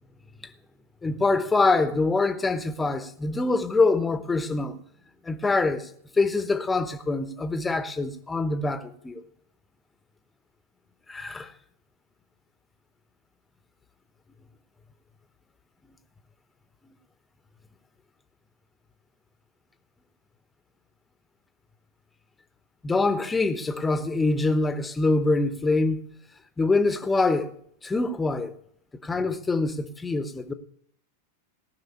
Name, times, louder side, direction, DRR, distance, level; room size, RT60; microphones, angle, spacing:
voice 1, 1.0-4.8 5.2-5.9 6.1-9.2 11.1-11.5 22.8-26.0 26.6-27.5 27.8-28.5 29.0-30.5, left 3 dB, 10° left, 1.0 m, -24 dB
18.0 x 6.0 x 7.0 m
figure-of-eight pair, 90°, 0 cm